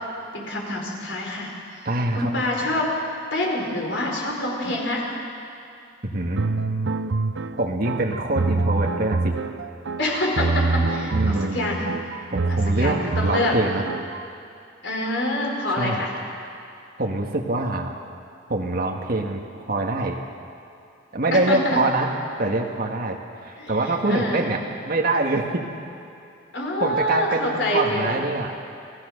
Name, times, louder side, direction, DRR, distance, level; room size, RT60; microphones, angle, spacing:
voice 1, 0.3-1.5 2.1-2.9 3.3-5.0 10.0-11.8 12.5-13.5 14.8-16.1 21.3-21.6 23.6-23.7 24.0-24.5 26.5-28.2, left 1 dB, 70° left, -1 dB, 4.8 m, -26 dB
voice 2, 1.8-2.3 4.6-4.8 6.0-6.4 7.6-9.3 11.1-12.0 12.3-13.8 15.7-16.0 17.0-17.9 18.5-19.4 19.7-20.2 21.1-22.1 22.4-24.6 24.8-25.7 26.8-28.5, right 2 dB, 50° right, 0 dB, 1.7 m, -24 dB
sound 1, 6.4-14.3, right 3 dB, 75° right, 0.7 m, -25 dB
28.0 x 17.0 x 6.6 m, 2.5 s
head